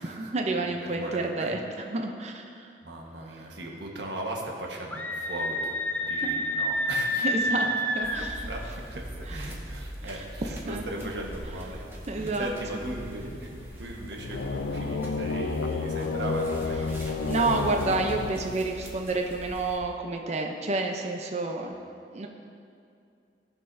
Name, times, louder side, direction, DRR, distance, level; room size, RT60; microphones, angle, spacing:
voice 1, 0.0-1.6 1.9-2.7 6.2-6.4 7.2-7.7 7.9-8.5 9.3-9.4 10.7-10.8 12.1-12.5 17.3-21.8 22.1-22.3, right 3 dB, 40° right, 3 dB, 0.6 m, -29 dB
voice 2, 0.6-1.5 2.8-7.3 8.5-11.9 12.2-17.3, right 1 dB, 75° right, -1 dB, 1.3 m, -38 dB
Screaming, 4.9-8.3, equal, 10° left, 0.6 m, -28 dB
sound 1, 8.0-19.8, equal, 15° right, 1.1 m, -42 dB
sound 2, 14.2-18.9, left 4 dB, 85° left, 0.5 m, -31 dB
17.0 x 5.7 x 2.7 m, 2.4 s
head